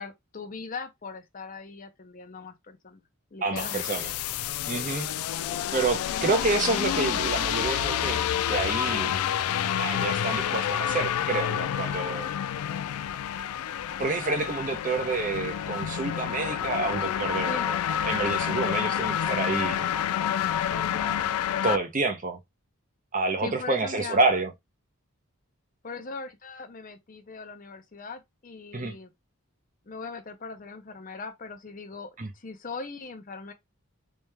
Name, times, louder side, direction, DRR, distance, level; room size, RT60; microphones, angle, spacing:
voice 1, 0.0-3.0 3.3-3.9 17.4-17.7 20.7-21.4 23.4-24.2 25.8-29.1 29.9-33.5, left 4 dB, 40° left, 0.6 m, -40 dB
voice 2, 3.4-4.1 4.7-5.1 5.7-8.2 8.5-9.2 9.8-12.3 14.0-17.8 18.1-19.8 21.6-22.4 23.1-24.5 28.7-28.9 32.2-32.3, right 3 dB, 35° right, 0.6 m, -28 dB
sound 1, 3.6-21.8, left 9 dB, 80° left, 0.3 m, -28 dB
3.3 x 3.3 x 3.3 m
head